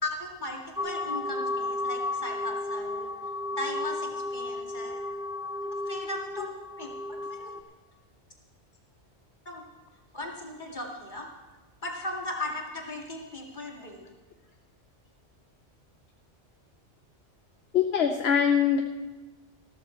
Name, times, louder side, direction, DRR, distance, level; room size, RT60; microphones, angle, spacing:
voice 1, 0.0-3.1 3.5-5.0 5.6-6.5 6.8-7.5 9.5-9.6 10.1-11.3 11.8-14.1, left 2 dB, 40° left, 0 dB, 2.3 m, -37 dB
sound 1, 0.8-7.6, left 2 dB, 5° right, 0.8 m, -33 dB
voice 2, 17.7-18.8, left 7 dB, 65° left, 5 dB, 1.1 m, -23 dB
14.0 x 13.5 x 4.5 m, 1.1 s
omnidirectional pair, 1.2 m